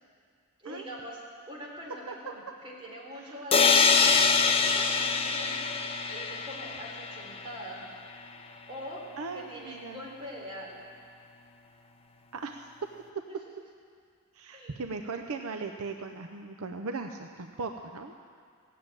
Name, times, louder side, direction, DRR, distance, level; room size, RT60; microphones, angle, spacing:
voice 1, 0.6-1.2 1.5-3.9 4.4-5.7 6.1-7.8 8.7-9.0 9.3-10.8 14.5-14.8, equal, 25° right, -4 dB, 3.5 m, -43 dB
sound 1, 3.5-7.3, left 5 dB, 25° left, 0.7 m, -24 dB
voice 2, 9.2-10.0 12.3-12.7 14.3-18.1, right 4 dB, 70° right, 5 dB, 0.7 m, -38 dB
16.5 x 7.6 x 9.0 m, 2.2 s
head